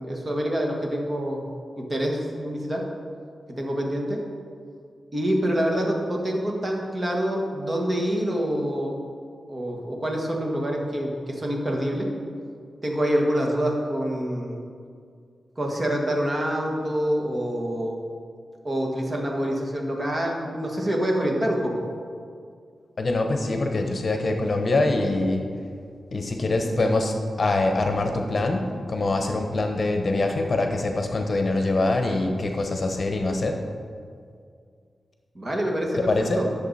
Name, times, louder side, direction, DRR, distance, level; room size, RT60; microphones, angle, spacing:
voice 1, 0.0-1.4 1.8-2.8 3.5-4.2 5.1-9.0 9.5-12.1 12.8-14.6 15.6-18.0 18.6-21.8 35.3-36.4, equal, 30° right, 0 dB, 1.7 m, -26 dB
voice 2, 23.0-25.4 26.1-33.6 36.1-36.4, left 2 dB, 50° left, 4 dB, 0.9 m, -24 dB
11.5 x 6.7 x 4.2 m, 2.2 s
wide cardioid pair, 90°, 0 cm